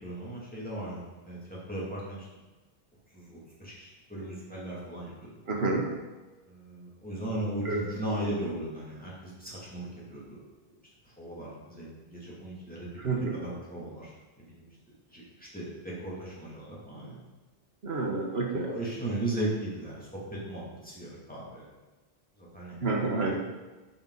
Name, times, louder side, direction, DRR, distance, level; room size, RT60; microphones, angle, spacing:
voice 1, 0.0-1.4 1.7-2.3 3.1-5.3 6.5-10.4 11.2-14.1 14.4-15.2 15.5-17.2 18.6-21.7 22.4-22.8, right 1 dB, 10° left, -7 dB, 2.8 m, -37 dB
voice 2, 5.5-5.9 7.6-7.8 13.0-13.4 17.8-18.7 22.8-23.4, right 3 dB, 80° right, 0 dB, 1.6 m, -29 dB
12.0 x 5.6 x 4.1 m, 1.2 s
omnidirectional pair, 1.0 m